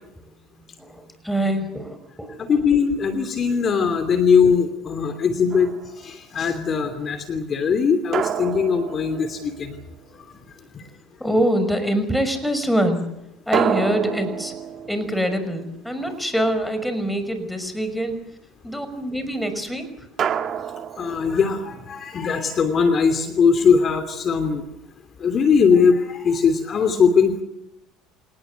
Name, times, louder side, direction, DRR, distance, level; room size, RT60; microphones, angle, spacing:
voice 1, 0.8-2.5 11.2-13.0 13.5-14.5 14.9-18.2 18.6-19.9, equal, 5° left, 9 dB, 5.7 m, -24 dB
voice 2, 2.5-5.7 6.0-9.7 21.0-24.6 25.2-27.3, left 6 dB, 40° left, 9 dB, 2.9 m, -20 dB
sound 1, 5.5-6.1 8.1-10.0 13.5-16.1 20.2-21.8, right 8 dB, 45° right, 1.9 m, -28 dB
27.0 x 19.5 x 8.2 m, 0.85 s
hypercardioid pair, 75°, 0 cm